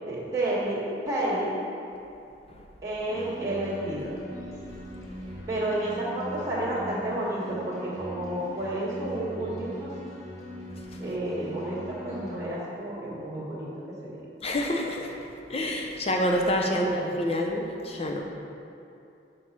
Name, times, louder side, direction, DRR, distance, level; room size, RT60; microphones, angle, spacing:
voice 1, 0.1-1.5 2.8-4.1 5.5-9.9 11.0-13.7 14.0-14.2 16.6-17.1, right 1 dB, 20° right, -10 dB, 1.7 m, -31 dB
sound 1, 3.1-12.3, equal, 20° left, 1.8 m, -40 dB
voice 2, 14.4-15.1 15.5-18.2, equal, 35° left, 1 dB, 0.7 m, -27 dB
6.2 x 4.8 x 5.9 m, 2.7 s
head